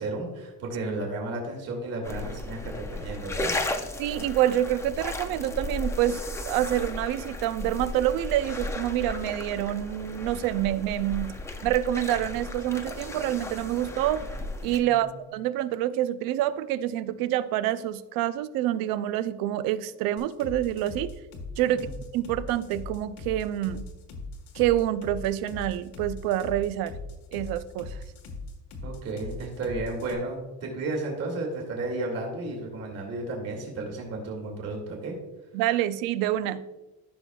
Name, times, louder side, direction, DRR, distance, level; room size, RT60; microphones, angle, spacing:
voice 1, 0.0-3.5 14.8-15.1 21.7-22.0 28.8-35.2, right 2 dB, 45° right, 0 dB, 2.3 m, -33 dB
sound 1, 2.0-14.8, left 2 dB, 10° left, 0.4 m, -35 dB
voice 2, 4.0-6.2 6.5-11.4 11.6-14.3 14.6-21.1 21.6-21.9 22.1-23.9 24.5-26.9 27.3-28.0 35.5-36.6, right 13 dB, 90° right, 14 dB, 0.6 m, -27 dB
sound 2, 20.2-30.1, left 3 dB, 90° left, 1.5 m, -39 dB
14.0 x 6.0 x 2.3 m, 1.1 s
cardioid pair, 165°, 34 cm